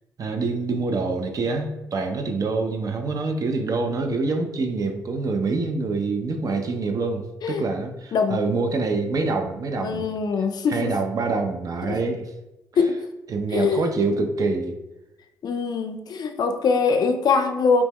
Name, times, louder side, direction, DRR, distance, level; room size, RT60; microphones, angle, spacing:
voice 1, 0.2-10.1 10.7-12.3 13.3-14.8, right 3 dB, 45° right, 4 dB, 0.4 m, -26 dB
voice 2, 9.8-10.9 11.9-12.0 12.8-13.0 13.5-13.9 15.4-17.8, left 5 dB, 55° left, 6 dB, 0.4 m, -22 dB
2.9 x 2.1 x 3.5 m, 0.94 s
supercardioid pair, 50°, 8 cm